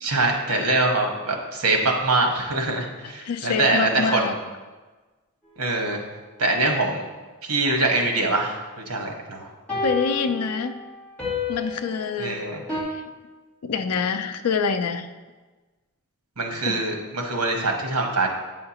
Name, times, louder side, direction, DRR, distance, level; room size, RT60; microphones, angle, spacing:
voice 1, 0.0-4.3 5.6-6.0 6.4-7.1 7.4-8.6 8.9-9.5 12.2-12.6 16.4-18.3, right 2 dB, 75° right, 2 dB, 1.2 m, -23 dB
voice 2, 3.0-4.3 9.8-10.8 11.5-12.4 12.7-13.0 13.6-15.1 16.6-16.8, left 5 dB, 85° left, 9 dB, 0.5 m, -26 dB
sound 1, 5.5-5.6 9.7-12.8, left 3 dB, 5° left, 2.3 m, -31 dB
8.8 x 5.7 x 2.9 m, 1.3 s
head